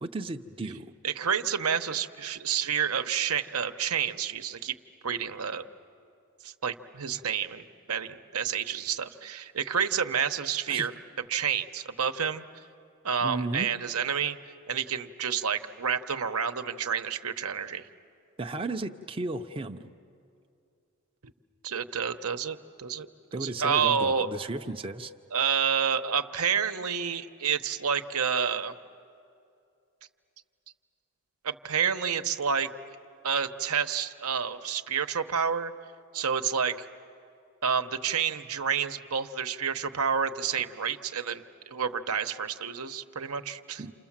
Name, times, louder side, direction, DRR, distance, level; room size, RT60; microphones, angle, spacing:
voice 1, 0.0-0.9 10.7-10.9 13.2-13.7 18.4-19.9 23.3-25.1 43.8-43.9, right 2 dB, 25° right, 4 dB, 0.6 m, -34 dB
voice 2, 1.0-4.7 5.0-5.6 6.4-10.9 11.3-12.4 13.0-14.4 14.7-17.9 21.6-23.1 23.3-24.3 25.3-28.7 31.4-32.7 33.2-35.7 36.1-36.8 37.6-43.8, right 7 dB, 75° right, 8 dB, 1.0 m, -29 dB
28.5 x 28.5 x 7.4 m, 2.5 s
head